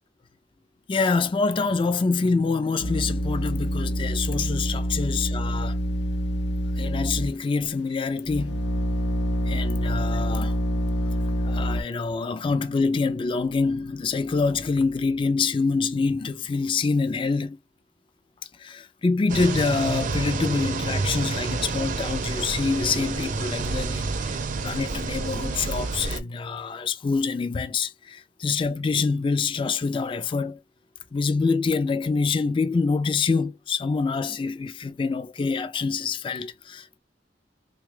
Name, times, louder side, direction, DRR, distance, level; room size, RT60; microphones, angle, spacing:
voice 1, 0.9-5.8 6.8-8.6 9.5-10.6 11.4-17.6 18.6-24.0 24.3-30.6 31.1-37.0, left 4 dB, 30° left, 0.3 m, -26 dB
sound 1, 2.8-7.6 8.2-11.8, equal, 70° left, 0.6 m, -26 dB
sound 2, 19.3-26.2, right 3 dB, 45° right, 0.5 m, -29 dB
3.5 x 2.3 x 3.2 m
head